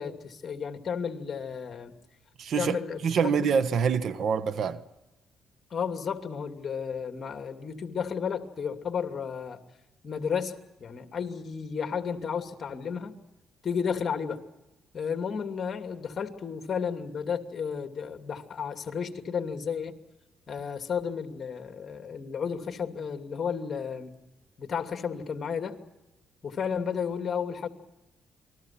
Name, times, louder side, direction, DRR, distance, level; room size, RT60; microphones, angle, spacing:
voice 1, 0.0-1.9 2.6-3.5 5.7-9.6 10.0-13.2 13.6-14.4 14.9-19.9 20.5-24.1 24.6-25.8 26.4-27.7, left 6 dB, 45° left, 2.6 m, -33 dB
voice 2, 2.4-4.8, right 6 dB, 65° right, 1.3 m, -26 dB
28.5 x 21.0 x 6.0 m
cardioid pair, 90°, 0 cm